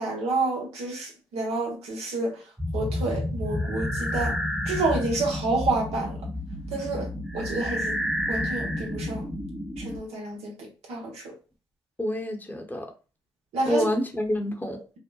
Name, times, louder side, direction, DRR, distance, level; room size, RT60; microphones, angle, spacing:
voice 1, 0.0-2.4 2.7-4.3 4.7-6.2 6.7-7.1 7.3-8.0 8.3-9.2 9.8-11.3 13.5-13.8, right 3 dB, 80° right, 0.8 m, -29 dB
sound 1, 2.6-10.0, left 1 dB, 10° right, 0.9 m, -30 dB
voice 2, 12.0-12.9 13.7-14.8, left 1 dB, 15° left, 0.7 m, -27 dB
2.7 x 2.0 x 2.2 m
hypercardioid pair, 40°, 11 cm